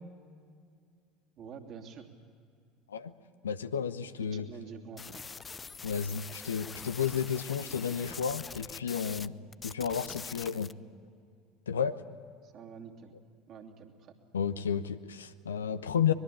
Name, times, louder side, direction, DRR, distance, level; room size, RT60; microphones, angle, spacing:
voice 1, 1.4-2.1 4.1-5.3 12.4-13.1 13.5-14.1, right 6 dB, 45° right, 3 dB, 2.8 m, -47 dB
voice 2, 3.4-4.5 5.8-9.4 9.6-10.7 11.7-11.9 14.3-16.1, left 7 dB, 75° left, 11 dB, 0.8 m, -32 dB
sound 1, 5.0-9.3 9.5-10.7, left 5 dB, 25° left, 0.5 m, -44 dB
23.5 x 21.5 x 8.5 m, 2.2 s
figure-of-eight pair, 70°, 0 cm